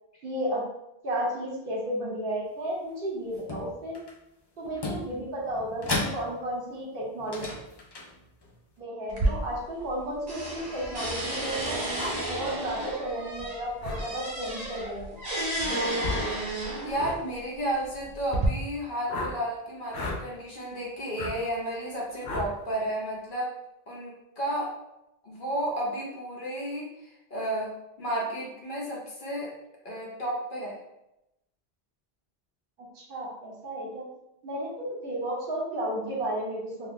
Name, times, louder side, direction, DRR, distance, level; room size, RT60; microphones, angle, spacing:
voice 1, 0.2-0.6 1.0-4.0 4.6-7.5 8.8-11.8 12.3-15.2 32.8-34.1 34.4-36.9, right 1 dB, 65° right, -3 dB, 1.0 m, -33 dB
sound 1, 3.3-4.1 4.6-6.7 7.2-8.6, left 2 dB, 40° left, 0.3 m, -35 dB
sound 2, 9.1-10.0 10.3-17.1 17.9-18.5, right 1 dB, 45° right, 0.7 m, -32 dB
sound 3, 12.0-12.2 13.8-14.0 16.0-16.3 16.9-17.2 19.1-19.4 19.9-20.2 21.2-21.3 22.2-22.5, left 2 dB, 85° left, 0.8 m, -33 dB
voice 2, 16.8-23.5 23.9-24.7 25.2-27.7 28.0-29.5 29.8-30.8, right 1 dB, 55° left, -4 dB, 1.0 m, -32 dB
2.8 x 2.3 x 3.5 m, 0.87 s
omnidirectional pair, 1.0 m